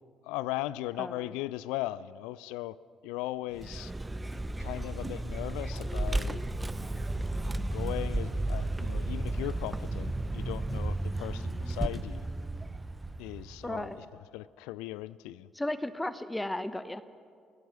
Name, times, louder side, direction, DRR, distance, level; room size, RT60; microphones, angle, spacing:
voice 1, 0.2-2.8 3.0-3.9 4.6-6.4 7.5-12.3 13.2-14.1 14.3-15.5, left 16 dB, 65° left, 20 dB, 0.4 m, -38 dB
Vehicle, 3.5-13.9, right 2 dB, 15° right, 0.9 m, -33 dB
voice 2, 13.6-14.0 15.6-17.0, left 1 dB, 10° left, 14 dB, 0.9 m, -34 dB
28.0 x 16.0 x 6.1 m, 2.3 s
figure-of-eight pair, 45°, 0 cm